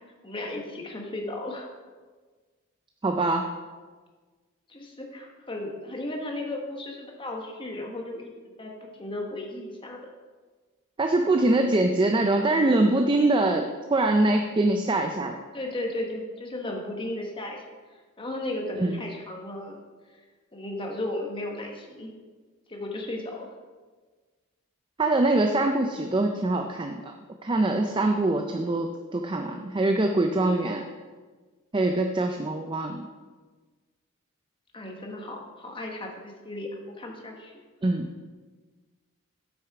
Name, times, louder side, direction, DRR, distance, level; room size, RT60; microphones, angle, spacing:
voice 1, 0.2-1.7 4.7-8.3 8.6-10.1 15.5-17.6 17.9-19.8 20.5-22.1 22.7-23.5 34.7-37.6, left 1 dB, 25° left, 1 dB, 1.2 m, -35 dB
voice 2, 3.0-3.4 11.0-15.4 18.8-19.0 25.0-27.1 27.4-30.8 31.7-33.1 37.8-38.1, right 2 dB, 20° right, 4 dB, 0.4 m, -23 dB
8.3 x 6.3 x 4.8 m, 1.4 s
head